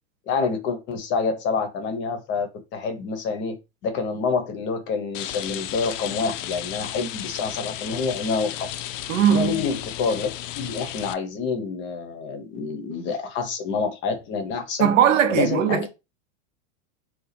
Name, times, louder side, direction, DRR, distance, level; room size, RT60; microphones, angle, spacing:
voice 1, 0.3-3.6 3.8-8.7 9.3-14.9 15.3-15.9, left 5 dB, 30° left, 0.7 m, -27 dB
Rain, 5.1-11.1, left 12 dB, 75° left, 0.5 m, -34 dB
voice 2, 9.1-9.6 14.8-15.9, right 9 dB, 85° right, 0.8 m, -19 dB
2.8 x 2.4 x 4.0 m
supercardioid pair, 140°, 38 cm